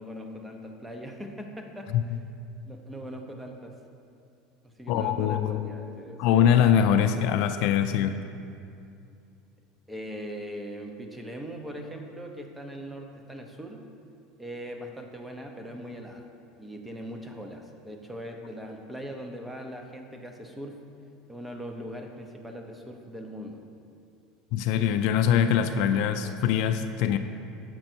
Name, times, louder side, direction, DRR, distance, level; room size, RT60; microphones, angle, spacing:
voice 1, 0.0-2.2 2.7-3.7 4.6-6.3 9.9-13.8 14.4-16.3 16.6-20.8 21.3-23.6, equal, 5° right, 3 dB, 0.7 m, -40 dB
voice 2, 4.9-5.6 6.2-8.2 24.5-27.2, left 9 dB, 65° left, 8 dB, 0.4 m, -23 dB
7.7 x 5.2 x 4.4 m, 2.5 s
supercardioid pair, 120°, 0 cm